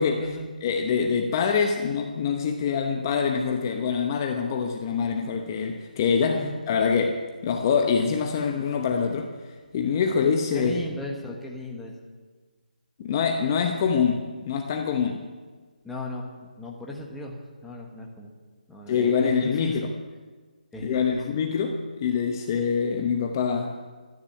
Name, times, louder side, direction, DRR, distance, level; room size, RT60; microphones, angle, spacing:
voice 1, 0.0-0.4 0.6-9.3 9.7-10.8 13.0-15.3 18.9-19.9 20.8-23.8, left 6 dB, 25° left, 4 dB, 0.9 m, -25 dB
voice 2, 10.5-11.9 15.8-18.3 18.7-19.9 20.7-21.2, left 1 dB, 5° left, -1 dB, 1.2 m, -36 dB
13.5 x 9.7 x 9.5 m, 1.4 s
hypercardioid pair, 165°, 5 cm